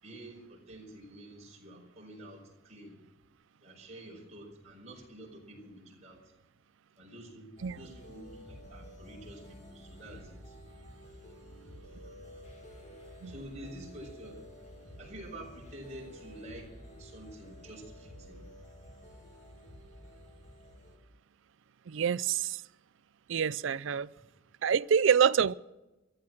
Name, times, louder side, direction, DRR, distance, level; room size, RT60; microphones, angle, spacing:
voice 1, 0.0-3.0 3.6-6.3 7.0-10.6 13.2-14.4 15.0-18.4, right 1 dB, 35° right, 5.2 m, -48 dB
sound 1, 7.6-21.0, equal, 35° left, 2.0 m, -51 dB
voice 2, 21.9-22.6 23.3-24.1 24.6-25.5, right 7 dB, 70° right, 0.4 m, -26 dB
14.5 x 13.5 x 6.2 m
head